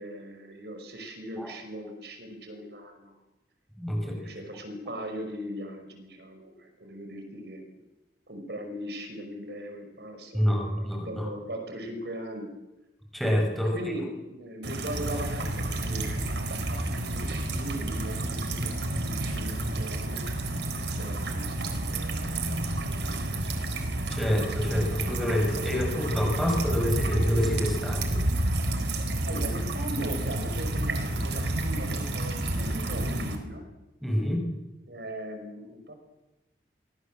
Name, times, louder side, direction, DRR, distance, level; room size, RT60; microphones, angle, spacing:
voice 1, 0.0-3.2 4.0-7.6 8.3-12.6 13.7-16.1 16.7-20.3 21.0-23.9 29.3-33.7 34.9-35.9, equal, 70° right, 5 dB, 5.5 m, -39 dB
voice 2, 3.8-4.2 10.3-11.3 13.1-13.7 24.1-28.2 34.0-34.4, equal, ahead, 1 dB, 6.5 m, -27 dB
sound 1, 14.6-33.4, right 1 dB, 85° right, 4.1 m, -30 dB
28.5 x 23.0 x 7.7 m, 1.0 s
head